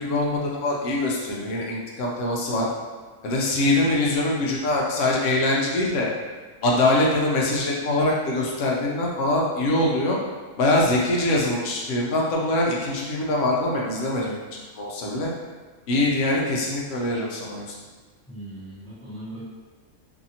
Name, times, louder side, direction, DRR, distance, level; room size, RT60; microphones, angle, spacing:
voice 1, 0.0-2.7 3.2-6.1 6.6-10.2 10.6-15.3 15.9-17.7, left 2 dB, 70° left, -3 dB, 0.8 m, -23 dB
voice 2, 18.3-19.5, right 1 dB, 5° left, -11 dB, 0.6 m, -38 dB
2.7 x 2.6 x 2.7 m, 1.4 s
omnidirectional pair, 1.5 m